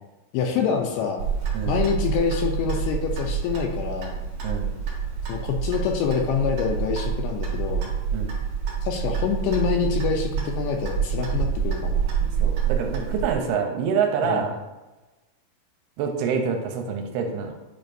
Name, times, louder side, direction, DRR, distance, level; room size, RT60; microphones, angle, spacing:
voice 1, 0.3-1.3 1.7-4.2 5.3-7.9 8.8-12.2 14.2-14.5, left 6 dB, 80° left, 3 dB, 2.3 m, -26 dB
Clock, 1.2-13.3, right 7 dB, 65° right, 1.8 m, -27 dB
voice 2, 4.4-4.8 8.1-8.4 12.4-14.6 16.0-17.5, right 6 dB, 80° right, 3 dB, 2.5 m, -26 dB
9.2 x 5.1 x 2.6 m, 1.1 s
omnidirectional pair, 4.8 m